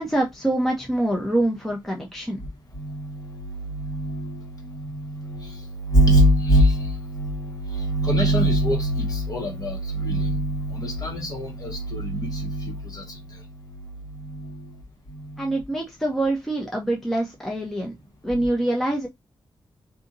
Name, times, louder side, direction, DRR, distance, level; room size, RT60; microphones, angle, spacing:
voice 1, 0.0-2.4 15.4-17.9 18.2-19.1, right 1 dB, 5° left, 0.6 m, -25 dB
voice 2, 2.7-13.4 14.2-14.6 15.1-15.4, equal, 45° left, 1.4 m, -24 dB
2.7 x 2.6 x 3.8 m
wide cardioid pair, 170°, 9 cm